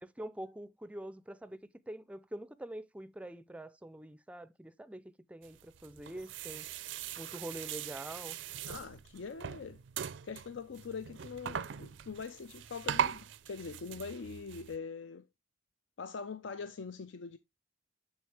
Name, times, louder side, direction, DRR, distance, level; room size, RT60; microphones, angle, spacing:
voice 1, 0.0-6.7 7.2-8.4, right 1 dB, 5° right, 0.4 m, -45 dB
sound 1, 5.4-14.8, right 8 dB, 70° right, 0.4 m, -40 dB
voice 2, 8.7-9.8 10.2-15.3 16.0-17.4, left 5 dB, 75° left, 0.5 m, -43 dB
7.2 x 6.3 x 3.2 m
head